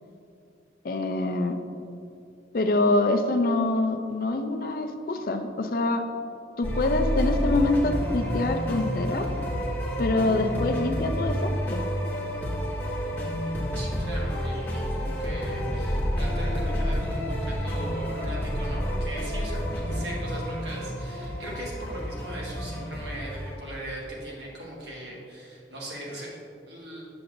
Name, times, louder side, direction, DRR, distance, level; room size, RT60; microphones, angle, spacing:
voice 1, 0.8-1.5 2.5-6.0 6.6-9.3 10.0-11.8, left 2 dB, 50° left, 6 dB, 0.4 m, -25 dB
sound 1, 6.6-23.5, equal, 10° left, 1.1 m, -29 dB
voice 2, 13.7-27.0, right 1 dB, 75° right, -4 dB, 1.6 m, -39 dB
7.6 x 6.8 x 2.6 m, 2.6 s
head